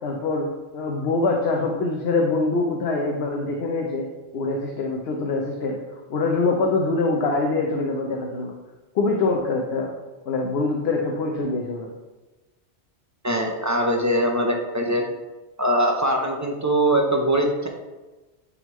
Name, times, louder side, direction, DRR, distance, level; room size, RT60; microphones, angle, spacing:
voice 1, 0.0-0.5 0.7-4.1 4.3-5.8 6.1-8.5 8.9-9.9 10.3-11.9, left 3 dB, 70° left, 1 dB, 0.9 m, -24 dB
voice 2, 13.2-15.0 15.6-17.7, right 1 dB, 20° right, 2 dB, 0.5 m, -22 dB
9.5 x 3.6 x 3.0 m, 1.2 s
omnidirectional pair, 1.1 m